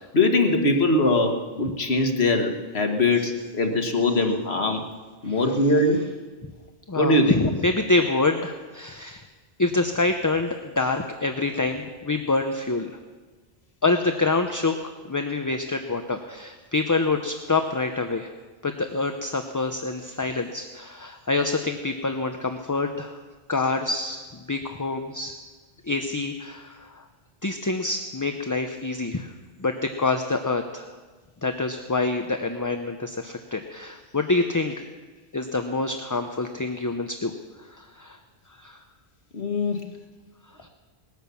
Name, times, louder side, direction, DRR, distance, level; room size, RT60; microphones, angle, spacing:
voice 1, 0.1-4.9 5.2-6.0 7.0-7.4 39.3-39.8, left 2 dB, 90° left, 4 dB, 1.8 m, -22 dB
voice 2, 6.9-9.2 9.6-12.9 13.8-14.7 15.1-18.3 18.6-23.2 23.5-25.4 25.9-27.0 27.4-29.3 29.6-30.9 31.4-34.8 35.3-37.3 37.7-38.2 38.5-38.8 40.6-40.7, left 3 dB, 20° left, 6 dB, 0.6 m, -26 dB
19.5 x 10.5 x 7.0 m, 1.4 s
omnidirectional pair, 1.0 m